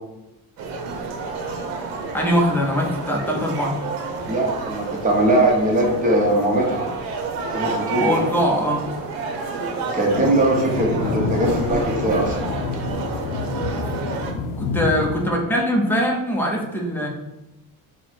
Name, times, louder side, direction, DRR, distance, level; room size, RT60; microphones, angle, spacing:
sound 1, 0.6-14.3, right 4 dB, 85° right, 0.8 m, -30 dB
sound 2, 1.0-15.3, left 4 dB, 65° left, 0.5 m, -31 dB
voice 1, 2.1-3.7 8.0-8.9 14.6-17.1, equal, 5° left, -1 dB, 0.5 m, -22 dB
voice 2, 4.3-6.9 7.5-8.2 9.9-12.4, right 1 dB, 25° right, -1 dB, 0.9 m, -20 dB
4.2 x 2.1 x 4.4 m, 0.97 s
cardioid pair, 155°, 34 cm